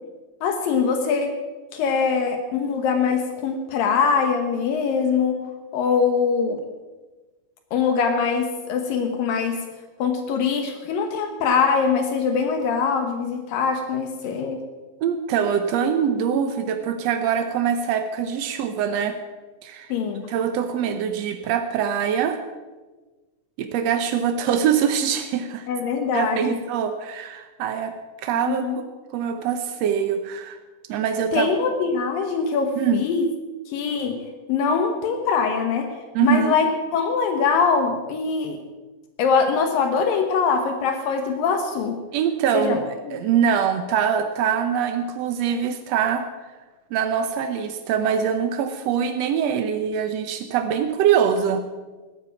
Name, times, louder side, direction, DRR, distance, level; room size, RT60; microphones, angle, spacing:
voice 1, 0.4-1.3 1.7-5.4 5.7-6.6 7.7-9.6 10.0-14.6 19.9-20.3 25.7-26.6 28.5-28.8 31.3-33.2 33.7-34.2 34.5-35.9 36.2-38.6 39.2-42.0 42.5-42.8 43.1-43.2, left 5 dB, 75° left, 5 dB, 2.8 m, -22 dB
voice 2, 15.0-19.2 19.6-22.4 23.6-25.7 26.1-27.9 28.2-28.7 29.1-30.6 30.9-31.5 32.8-33.0 36.1-36.6 42.1-46.2 46.9-51.6, right 8 dB, 80° right, 7 dB, 1.5 m, -23 dB
16.0 x 13.0 x 5.8 m, 1.2 s
omnidirectional pair, 4.1 m